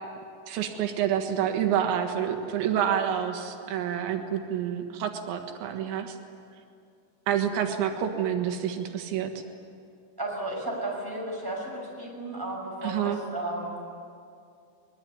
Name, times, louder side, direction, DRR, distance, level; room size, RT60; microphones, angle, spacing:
voice 1, 0.5-6.2 7.3-9.3 12.8-13.2, right 9 dB, 90° right, 5 dB, 3.9 m, -28 dB
voice 2, 10.2-13.8, right 1 dB, 5° right, -2 dB, 6.0 m, -34 dB
22.5 x 21.5 x 9.7 m, 2.4 s
omnidirectional pair, 5.1 m